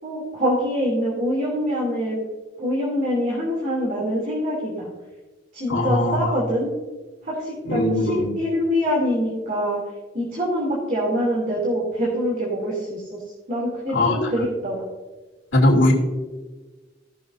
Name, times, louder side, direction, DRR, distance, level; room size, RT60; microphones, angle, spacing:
voice 1, 0.0-2.2 2.6-4.9 5.5-6.7 7.2-9.8 10.1-13.2 13.5-14.8, equal, 45° right, -5 dB, 2.9 m, -24 dB
voice 2, 5.7-6.4 7.7-8.3 13.9-14.3 15.5-15.9, left 1 dB, 85° left, -1 dB, 2.9 m, -20 dB
18.5 x 7.0 x 2.6 m, 1.2 s
head